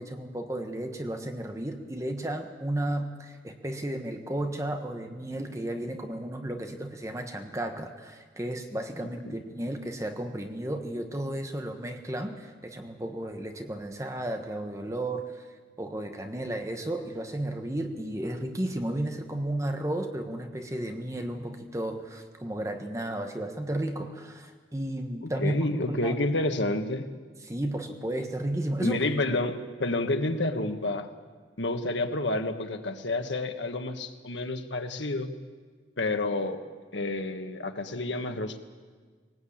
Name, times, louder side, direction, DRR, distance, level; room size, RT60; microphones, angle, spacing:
voice 1, 0.0-15.4 15.8-25.6 25.9-26.2 27.4-29.0, right 1 dB, 15° right, 5 dB, 1.3 m, -33 dB
voice 2, 25.4-27.1 28.8-31.1 31.6-35.3 36.0-36.6 36.9-38.6, left 2 dB, 90° left, 7 dB, 1.6 m, -29 dB
20.5 x 18.5 x 8.7 m, 1.5 s
head